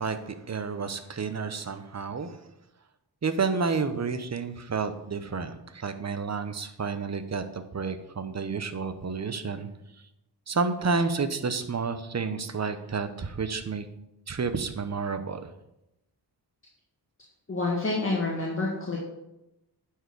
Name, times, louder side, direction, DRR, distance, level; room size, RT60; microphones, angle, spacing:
voice 1, 0.0-2.4 3.2-9.7 10.5-13.9 14.3-15.5, right 4 dB, 40° right, 10 dB, 1.0 m, -30 dB
voice 2, 17.5-19.0, left 3 dB, 30° left, -3 dB, 1.9 m, -28 dB
9.9 x 4.8 x 6.2 m, 0.89 s
wide cardioid pair, 90°, 41 cm